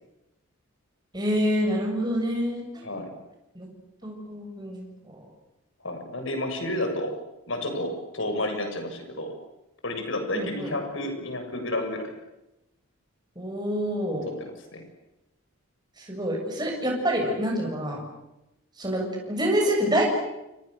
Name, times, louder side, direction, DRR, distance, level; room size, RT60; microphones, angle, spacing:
voice 1, 1.1-2.6 3.5-3.7 4.0-5.2 10.3-10.8 13.4-14.3 16.0-18.0 18.8-20.0, equal, 20° right, 0 dB, 7.5 m, -27 dB
voice 2, 5.8-7.1 7.5-9.3 9.8-12.1 14.4-14.8, left 1 dB, 60° left, 5 dB, 6.7 m, -31 dB
30.0 x 29.0 x 6.8 m, 0.92 s
head